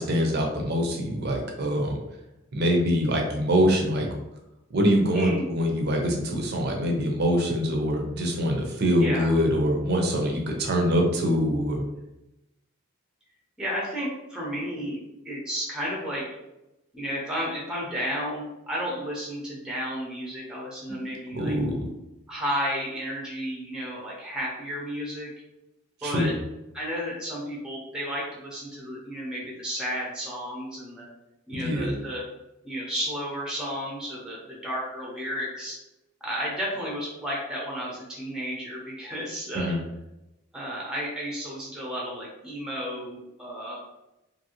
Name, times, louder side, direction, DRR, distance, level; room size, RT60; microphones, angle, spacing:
voice 1, 0.0-2.0 2.5-4.1 4.7-11.8 20.9-21.0 21.3-21.8 26.0-26.3 31.5-32.0 39.6-39.8, equal, 50° right, 1 dB, 0.5 m, -24 dB
voice 2, 5.1-5.5 9.0-9.4 13.6-15.0 15.2-16.3 16.9-21.6 22.3-25.3 26.0-26.3 26.7-31.1 31.5-32.2 32.6-35.8 36.2-39.8 40.5-43.8, equal, 5° right, -4 dB, 0.6 m, -32 dB
2.8 x 2.6 x 2.8 m, 0.94 s
head